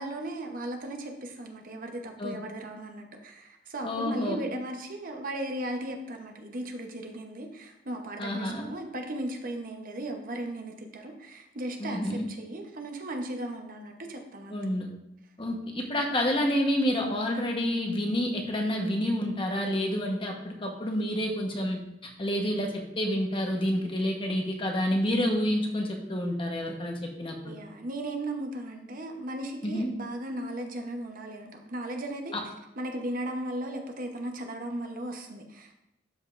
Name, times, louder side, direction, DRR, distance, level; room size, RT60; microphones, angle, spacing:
voice 1, 0.0-14.6 27.4-32.3 32.8-35.8, right 1 dB, 50° right, 3 dB, 0.9 m, -36 dB
voice 2, 3.8-4.4 8.2-8.6 11.8-12.3 14.5-14.9 15.4-22.7 23.0-27.6 29.6-29.9 32.3-32.4, equal, 30° left, 1 dB, 1.1 m, -29 dB
12.0 x 5.2 x 2.5 m, 0.84 s
head